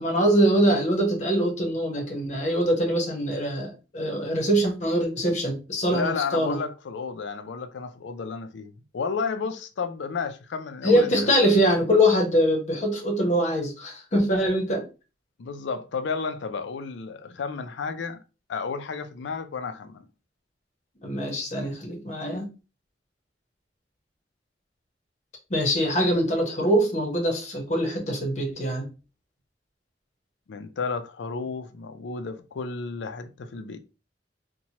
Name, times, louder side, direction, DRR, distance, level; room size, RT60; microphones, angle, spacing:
voice 1, 0.0-6.6 10.8-14.9 21.0-22.5 25.5-28.9, equal, 40° left, 0.9 m, -23 dB
voice 2, 5.9-11.3 15.4-18.2 18.5-20.1 30.5-33.8, left 5 dB, 85° left, 0.4 m, -32 dB
2.9 x 2.2 x 2.8 m
head